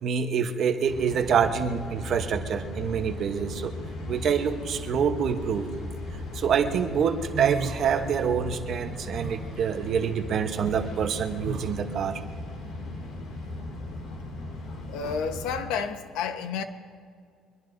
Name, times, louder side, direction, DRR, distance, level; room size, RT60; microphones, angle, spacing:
voice 1, 0.0-3.8 4.1-5.7 6.3-12.2, right 7 dB, 40° right, 1.0 m, -26 dB
sound 1, 0.9-15.6, left 2 dB, 50° left, 2.4 m, -37 dB
sound 2, 6.0-6.5 6.9-8.5 8.7-11.8, right 6 dB, 75° right, 1.5 m, -37 dB
voice 2, 14.9-16.6, left 6 dB, 85° left, 1.1 m, -30 dB
24.0 x 22.0 x 2.7 m
cardioid pair, 180°, 0 cm